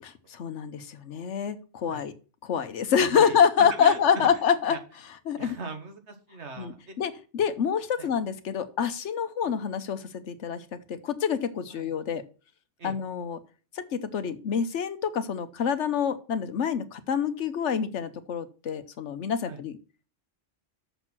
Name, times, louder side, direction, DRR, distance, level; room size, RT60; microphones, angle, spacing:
voice 1, 0.0-2.1 2.4-4.8 5.3-5.6 6.6-12.2 12.8-13.4 13.7-19.8, left 7 dB, 80° left, 11 dB, 1.2 m, -27 dB
voice 2, 3.0-4.4 4.7-4.8 5.4-7.0 8.0-8.1 11.7-11.9 12.8-12.9 19.4-19.6, right 4 dB, 70° right, 6 dB, 1.7 m, -39 dB
6.8 x 6.3 x 6.0 m, 0.36 s
omnidirectional pair, 1.2 m